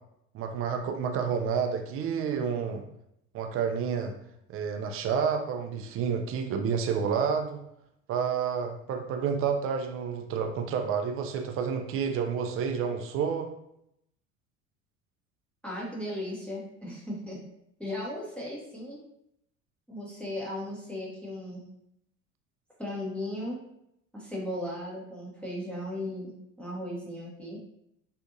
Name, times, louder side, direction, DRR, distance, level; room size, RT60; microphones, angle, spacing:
voice 1, 0.3-2.8 3.3-4.1 4.5-7.6 8.1-13.5, right 6 dB, 35° right, 4 dB, 0.4 m, -29 dB
voice 2, 15.6-17.4 17.8-19.0 19.9-21.6 22.8-23.6 24.1-27.6, left 1 dB, 5° left, -5 dB, 0.8 m, -36 dB
2.6 x 2.5 x 2.5 m, 0.77 s
hypercardioid pair, 70°, 41 cm